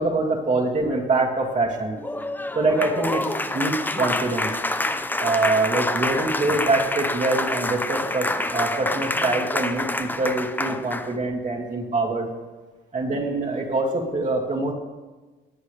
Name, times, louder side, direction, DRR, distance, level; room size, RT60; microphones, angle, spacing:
voice 1, 0.0-2.0 2.5-4.5 5.2-12.3 12.9-14.7, right 2 dB, 40° right, -1 dB, 2.3 m, -24 dB
Applause, 2.0-11.2, left 2 dB, 10° left, 0.6 m, -27 dB
19.5 x 8.3 x 3.3 m, 1.3 s
cardioid pair, 90°, 20 cm